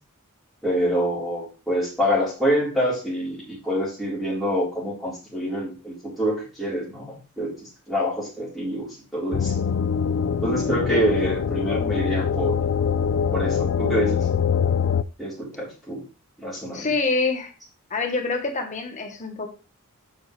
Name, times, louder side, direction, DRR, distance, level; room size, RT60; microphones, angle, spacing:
voice 1, 0.6-9.5 10.4-12.5 13.3-14.2 15.2-16.0 16.4-16.9, equal, ahead, -8 dB, 4.1 m, -26 dB
sound 1, 9.3-15.0, left 7 dB, 60° left, 0.4 m, -23 dB
voice 2, 16.7-17.5 17.9-19.5, left 3 dB, 35° left, 5 dB, 1.2 m, -26 dB
7.0 x 6.1 x 3.3 m, 0.34 s
head